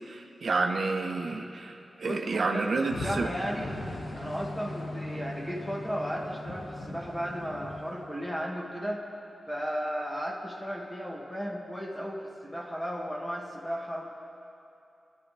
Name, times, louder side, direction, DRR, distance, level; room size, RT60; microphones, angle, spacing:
voice 1, 0.1-1.7 2.0-3.3, right 3 dB, 70° right, 1 dB, 1.2 m, -29 dB
voice 2, 2.0-3.8 4.1-9.1 9.5-14.1, equal, 10° left, -3 dB, 2.3 m, -35 dB
sound 1, 2.9-8.6, left 1 dB, 60° left, 2.0 m, -39 dB
28.5 x 12.5 x 3.5 m, 2.7 s
wide cardioid pair, 140°, 0 cm